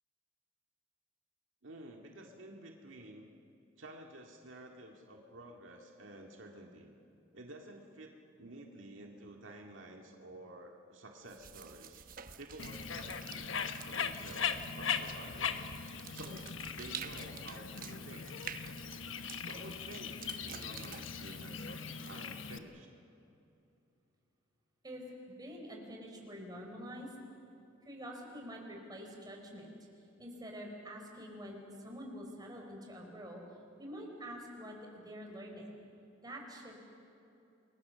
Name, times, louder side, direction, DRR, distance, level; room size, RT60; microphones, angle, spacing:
voice 1, 1.6-3.3 3.8-6.9 7.3-12.0 12.4-15.7 16.1-18.3 19.4-22.9, right 1 dB, 70° right, 1 dB, 2.0 m, -51 dB
sound 1, 11.3-22.5, right 7 dB, 45° right, 1.0 m, -50 dB
Bird, 12.6-22.6, left 6 dB, 70° left, 1.2 m, -40 dB
voice 2, 25.4-27.1 27.8-29.7 30.2-33.4 33.8-35.6 36.2-36.8, equal, 20° right, 1 dB, 4.4 m, -46 dB
28.5 x 22.0 x 6.8 m, 2.7 s
head